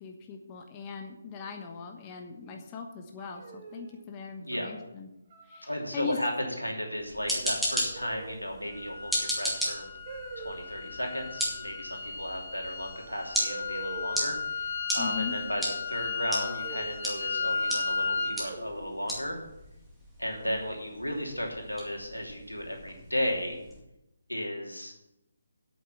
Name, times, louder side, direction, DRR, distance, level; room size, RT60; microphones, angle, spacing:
voice 1, 0.0-5.1 5.4-6.2 15.0-15.4, left 6 dB, 20° left, 3 dB, 1.1 m, -40 dB
sound 1, 3.2-4.1 5.3-5.7 6.2-6.5 7.9-8.6 10.1-10.7 12.6-12.7 13.5-14.4 16.4-17.5 18.4-19.1 20.3-20.9, right 3 dB, 30° right, 1.8 m, -44 dB
voice 2, 4.4-4.7 5.6-9.8 10.4-19.4 20.2-23.6 24.3-24.9, equal, 90° left, 0 dB, 3.0 m, -34 dB
sound 2, 7.0-23.8, equal, ahead, 2.2 m, -37 dB
sound 3, 8.7-18.4, left 5 dB, 45° left, 2.7 m, -35 dB
8.7 x 7.9 x 7.0 m, 0.89 s
figure-of-eight pair, 145°, 0 cm